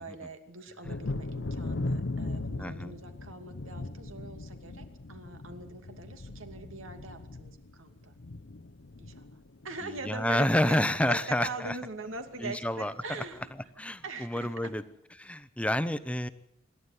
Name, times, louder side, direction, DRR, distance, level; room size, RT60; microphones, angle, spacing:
voice 1, 0.0-8.2 9.0-13.5 14.0-14.7, right 2 dB, 90° right, 7 dB, 2.6 m, -42 dB
Thunder, 0.8-10.3 10.5-11.3 11.7-11.8 12.2-12.4, left 2 dB, 70° left, 0.8 m, -38 dB
voice 2, 2.6-2.9 10.0-11.8 12.4-12.9 13.8-14.8 15.2-16.3, left 1 dB, 5° left, 13 dB, 0.8 m, -29 dB
26.5 x 11.5 x 9.7 m, 0.80 s
head